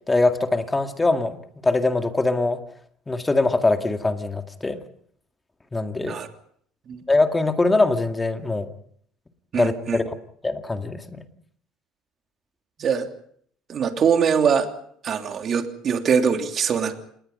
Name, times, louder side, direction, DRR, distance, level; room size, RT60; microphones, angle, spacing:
voice 1, 0.1-1.4 1.6-2.6 3.1-4.8 5.7-6.2 7.1-8.7 9.5-10.2 10.4-11.3, left 2 dB, 15° left, 7 dB, 2.1 m, -22 dB
voice 2, 9.5-10.0 12.8-13.1 13.7-14.7 15.0-16.9, right 7 dB, 35° right, 6 dB, 3.0 m, -22 dB
27.5 x 20.5 x 5.5 m, 0.62 s
cardioid pair, 135°, 0 cm